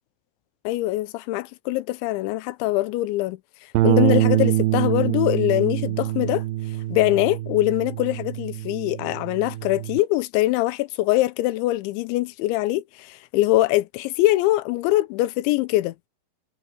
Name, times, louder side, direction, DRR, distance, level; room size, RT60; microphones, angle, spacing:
voice 1, 0.6-3.4 3.8-6.4 6.9-15.9, left 17 dB, 85° left, 3.1 m, -23 dB
Bass guitar, 3.7-10.0, right 16 dB, 90° right, 2.0 m, -24 dB
omnidirectional pair, 5.4 m